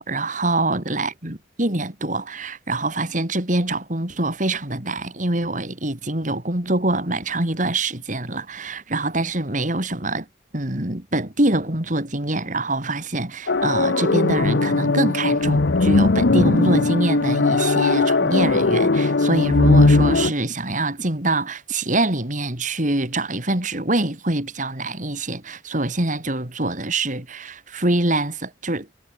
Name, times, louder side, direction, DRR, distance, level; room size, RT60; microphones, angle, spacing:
voice 1, 0.0-10.3 10.5-28.9, right 2 dB, 45° right, 3.5 m, -24 dB
sound 1, 13.5-20.3, left 3 dB, 65° left, 0.8 m, -18 dB
head